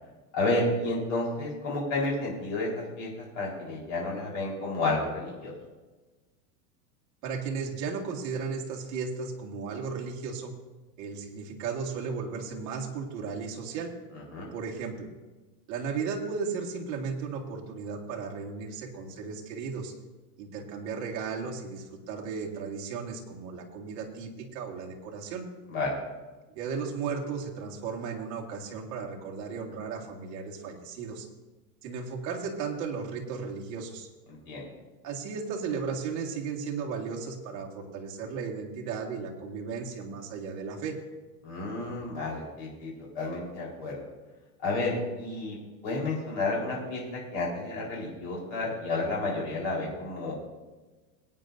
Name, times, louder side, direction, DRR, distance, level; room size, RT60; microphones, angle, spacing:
voice 1, 0.3-5.5 14.3-14.5 25.7-26.0 34.3-34.7 41.4-44.0 44.6-45.6 45.8-50.3, left 2 dB, 50° left, -3 dB, 4.2 m, -31 dB
voice 2, 7.2-10.5 11.0-13.9 14.5-15.1 15.7-19.9 20.4-25.5 26.5-31.3 31.8-34.1 35.0-41.0, right 5 dB, 35° right, -1 dB, 1.6 m, -35 dB
21.5 x 9.0 x 2.6 m, 1.2 s
supercardioid pair, 165°, 48 cm